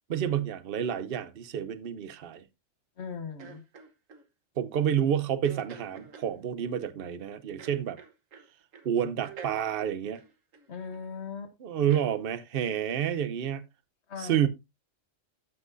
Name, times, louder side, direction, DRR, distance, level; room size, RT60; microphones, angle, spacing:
voice 1, 0.1-2.4 4.6-8.0 8.8-10.2 11.6-13.7 14.2-14.5, right 9 dB, 55° right, 0.9 m, -29 dB
voice 2, 3.0-3.6 10.7-11.5 14.1-14.5, left 6 dB, 60° left, 1.3 m, -39 dB
sound 1, 3.4-4.2 5.4-6.3 7.6-8.5 8.7-8.9 9.2-11.0 11.9-12.1 12.6-12.8, right 6 dB, 85° right, 1.6 m, -48 dB
13.0 x 5.9 x 2.6 m
omnidirectional pair, 1.3 m